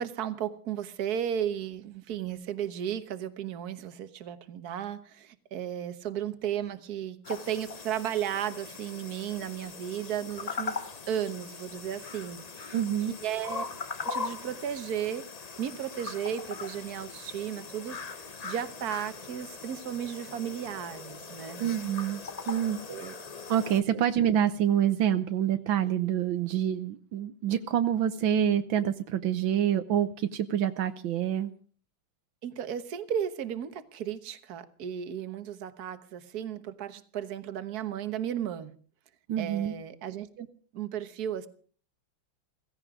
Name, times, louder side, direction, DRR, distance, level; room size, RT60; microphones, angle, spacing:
voice 1, 0.0-12.7 13.2-13.6 14.1-15.3 15.6-18.0 18.4-21.6 22.9-23.1 32.4-38.7 39.4-40.5 40.7-41.5, right 9 dB, 55° right, 12 dB, 1.6 m, -34 dB
sound 1, 7.2-23.8, left 5 dB, 40° left, 0.5 m, -40 dB
voice 2, 12.7-13.2 21.6-22.8 23.5-31.5 39.3-39.7, right 10 dB, 80° right, 11 dB, 1.7 m, -27 dB
16.5 x 16.0 x 4.9 m, 0.43 s
omnidirectional pair, 2.1 m